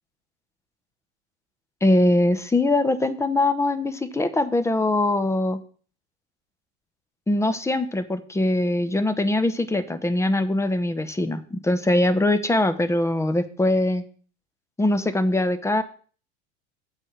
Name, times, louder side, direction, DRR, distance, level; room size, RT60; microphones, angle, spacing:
voice 1, 1.8-5.6 7.3-14.0 14.8-15.8, left 1 dB, 10° left, 11 dB, 0.8 m, -22 dB
7.5 x 4.8 x 6.3 m, 0.42 s
hypercardioid pair, 90°, 35 cm